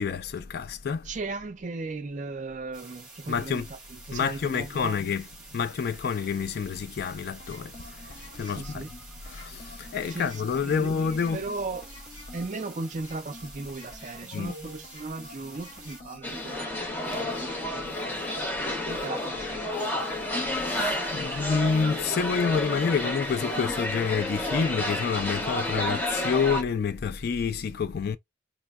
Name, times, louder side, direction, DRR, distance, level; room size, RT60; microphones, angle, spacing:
voice 1, 0.0-1.1 3.3-3.7 4.1-8.9 9.2-11.5 14.3-14.5 17.1-17.2 20.6-28.2, left 6 dB, 55° left, 0.3 m, -28 dB
voice 2, 1.1-3.6 4.1-4.9 8.6-8.9 10.1-10.3 10.6-11.8 12.3-16.6 17.0-18.4 18.9-20.3, right 3 dB, 40° right, 0.4 m, -37 dB
sound 1, 2.7-16.0, right 3 dB, 10° right, 1.7 m, -49 dB
sound 2, 7.4-24.2, left 1 dB, 25° left, 1.6 m, -48 dB
sound 3, 16.2-26.6, left 1 dB, 10° left, 0.7 m, -30 dB
4.2 x 2.0 x 2.3 m
head